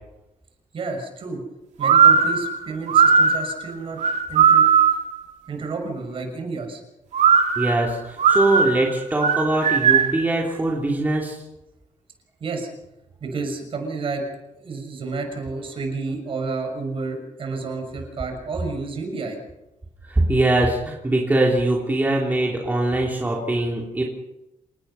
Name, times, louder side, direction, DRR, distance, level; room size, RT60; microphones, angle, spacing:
voice 1, 0.7-1.4 1.8-4.0 4.3-4.7 5.5-6.8 12.4-12.7 13.2-14.2 14.6-19.4, right 4 dB, 45° right, 4 dB, 6.3 m, -30 dB
sound 1, 1.8-5.1 7.1-10.2, right 6 dB, 65° right, 2.7 m, -17 dB
voice 2, 7.6-11.4 20.1-24.0, right 2 dB, 15° right, -2 dB, 3.2 m, -22 dB
28.5 x 19.0 x 5.7 m, 0.95 s
wide cardioid pair, 170°, 13 cm